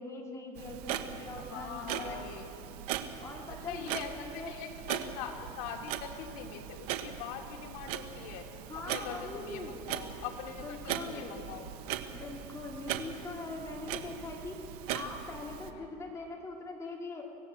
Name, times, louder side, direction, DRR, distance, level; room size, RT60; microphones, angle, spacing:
voice 1, 0.0-2.2 3.2-4.5 8.7-9.9 10.6-11.4 12.1-14.6 14.9-17.2, left 3 dB, 15° left, -1 dB, 3.0 m, -42 dB
Clock, 0.6-15.7, right 10 dB, 70° right, 1.4 m, -40 dB
voice 2, 1.4-2.5 3.5-8.5 8.7-11.7 15.6-15.9, left 7 dB, 65° left, 1 dB, 2.9 m, -43 dB
25.5 x 17.0 x 7.5 m, 2.9 s
cardioid pair, 160°, 20 cm